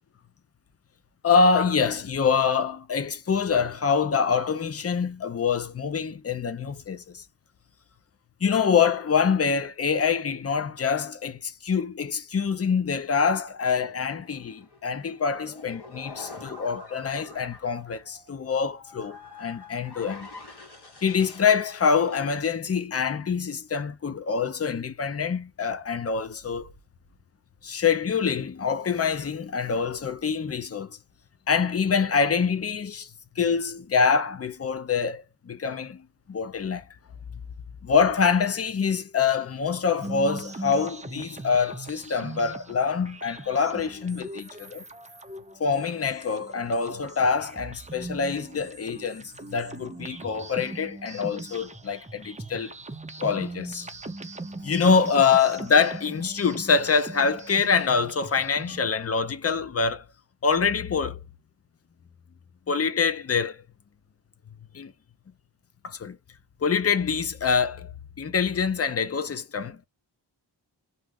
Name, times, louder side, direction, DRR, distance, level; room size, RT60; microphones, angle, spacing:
voice 1, 1.2-7.2 8.4-20.3 21.0-26.7 27.6-31.0 31.5-33.1 33.4-36.9 37.8-44.8 45.6-52.8 53.2-53.9 54.6-60.1 60.4-61.2 62.7-63.6 64.7-64.9 65.8-66.2 66.6-69.9, left 5 dB, 35° left, 0.5 m, -25 dB
sound 1, 13.7-22.2, left 3 dB, 55° left, 1.5 m, -46 dB
sound 2, 40.0-58.9, right 2 dB, 15° right, 0.5 m, -40 dB
2.7 x 2.3 x 3.4 m
wide cardioid pair, 95°, 46 cm